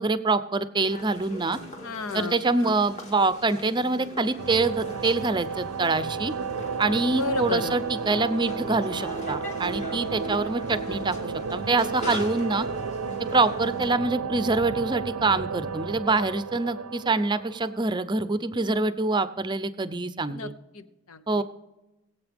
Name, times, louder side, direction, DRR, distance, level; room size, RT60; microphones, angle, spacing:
voice 1, 0.0-1.6 2.1-6.3 6.8-12.7 13.2-20.5 21.3-21.4, right 3 dB, 20° right, 13 dB, 0.5 m, -25 dB
sound 1, 0.8-13.9, left 1 dB, 35° left, 2.0 m, -41 dB
voice 2, 1.8-2.7 7.2-7.8 10.9-11.0 20.3-21.4, left 3 dB, 80° left, 12 dB, 0.9 m, -33 dB
sound 2, 4.4-18.0, right 5 dB, 90° right, 0.6 m, -33 dB
21.5 x 8.1 x 3.5 m, 0.99 s
head